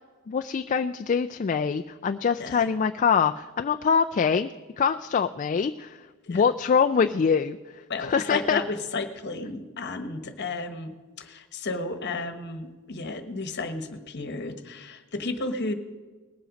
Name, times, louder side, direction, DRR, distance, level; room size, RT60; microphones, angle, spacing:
voice 1, 0.3-4.5 4.8-8.6, left 6 dB, 35° left, 7 dB, 0.3 m, -24 dB
voice 2, 2.4-2.7 6.2-6.5 7.9-15.7, left 3 dB, 55° left, 8 dB, 1.2 m, -33 dB
19.5 x 7.6 x 5.1 m, 1.3 s
head